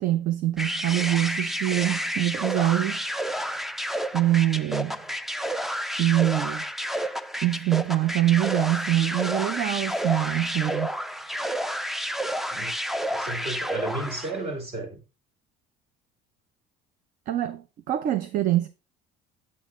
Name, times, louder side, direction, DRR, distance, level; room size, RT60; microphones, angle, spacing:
voice 1, 0.0-3.0 4.1-5.0 6.0-6.6 7.4-10.9 17.3-18.7, right 14 dB, 50° right, 0.6 m, -24 dB
sound 1, 0.6-14.4, equal, ahead, 0.3 m, -30 dB
voice 2, 13.1-15.0, right 2 dB, 35° right, 2.1 m, -33 dB
7.7 x 5.6 x 3.6 m
cardioid pair, 145°, 17 cm